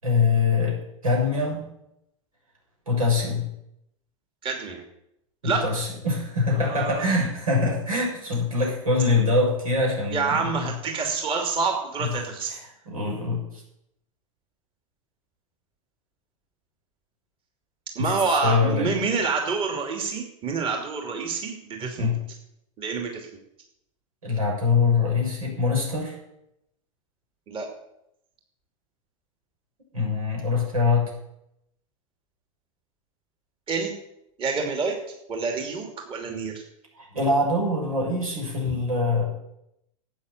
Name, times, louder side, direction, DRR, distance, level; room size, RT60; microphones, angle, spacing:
voice 1, 0.0-1.7 2.9-3.4 5.4-10.7 12.8-13.6 18.0-18.1 18.4-18.9 22.0-22.1 24.2-26.1 29.9-31.1 37.0-39.2, left 3 dB, 85° right, -1 dB, 6.7 m, -24 dB
voice 2, 4.4-4.8 5.4-5.6 6.5-7.1 10.1-12.5 17.9-22.1 22.8-23.3 27.5-27.7 33.7-33.9 34.4-35.0 35.3-36.6 38.7-38.8, right 4 dB, 30° right, 2 dB, 2.7 m, -27 dB
12.5 x 8.5 x 8.1 m, 0.81 s
hypercardioid pair, 105°, 18 cm